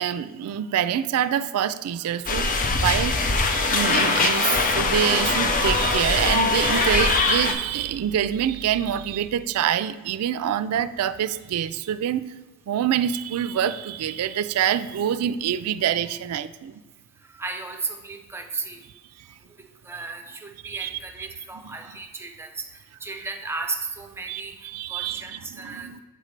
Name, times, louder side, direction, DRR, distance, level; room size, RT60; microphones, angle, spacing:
voice 1, 0.0-2.5 2.8-12.3 12.7-16.7 20.7-21.0 24.3-26.0, right 10 dB, 75° right, 15 dB, 0.3 m, -26 dB
sound 1, 2.3-7.5, left 3 dB, 40° left, 0.5 m, -22 dB
voice 2, 17.3-18.8 19.4-19.6 19.8-26.0, right 4 dB, 10° right, 4 dB, 0.5 m, -35 dB
7.8 x 3.2 x 5.1 m, 1.2 s
head